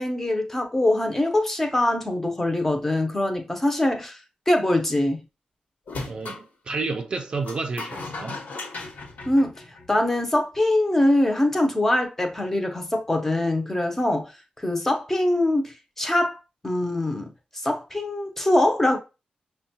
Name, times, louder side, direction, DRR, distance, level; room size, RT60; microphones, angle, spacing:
voice 1, 0.0-4.2 4.5-5.2 9.3-9.5 9.9-14.3 14.6-16.4 16.6-19.0, left 1 dB, 15° left, 0.6 m, -23 dB
sound 1, 5.9-6.4 7.4-10.1, left 3 dB, 75° left, 1.0 m, -36 dB
voice 2, 6.1-8.4, right 3 dB, 40° right, 0.4 m, -30 dB
6.1 x 2.2 x 2.7 m
wide cardioid pair, 175°, 3 cm